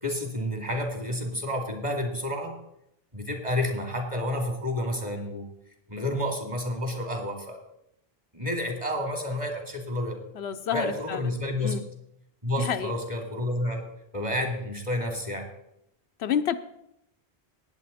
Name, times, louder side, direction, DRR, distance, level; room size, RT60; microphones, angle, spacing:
voice 1, 0.0-2.6 3.1-5.4 5.9-7.6 8.3-10.2 10.7-11.8 12.4-13.8 14.1-15.5, left 1 dB, 30° right, 2 dB, 2.6 m, -30 dB
voice 2, 10.4-11.2 11.6-11.9 12.6-12.9 16.2-16.6, left 9 dB, 80° left, 9 dB, 0.9 m, -29 dB
18.5 x 8.1 x 4.2 m, 0.79 s
omnidirectional pair, 1.1 m